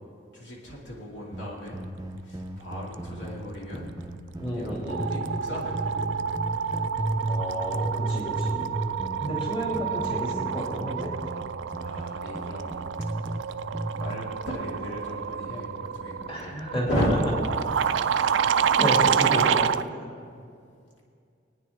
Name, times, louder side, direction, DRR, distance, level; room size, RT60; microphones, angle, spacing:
voice 1, 0.3-1.8 2.2-4.0 4.3-6.2 11.8-12.7 13.0-13.5 13.9-16.6 16.9-17.5, equal, 70° left, -4 dB, 2.4 m, -35 dB
sound 1, 1.3-5.4 5.7-7.5 7.7-13.4 13.7-14.2, right 1 dB, 20° right, 0.6 m, -33 dB
sound 2, 4.0-4.3 4.6-19.9, right 7 dB, 75° right, 0.3 m, -28 dB
voice 2, 4.4-5.1 7.3-8.7 9.2-11.1 16.3-17.0 18.2-19.7, equal, 30° left, -4 dB, 2.5 m, -31 dB
25.5 x 9.5 x 3.6 m, 2.3 s
head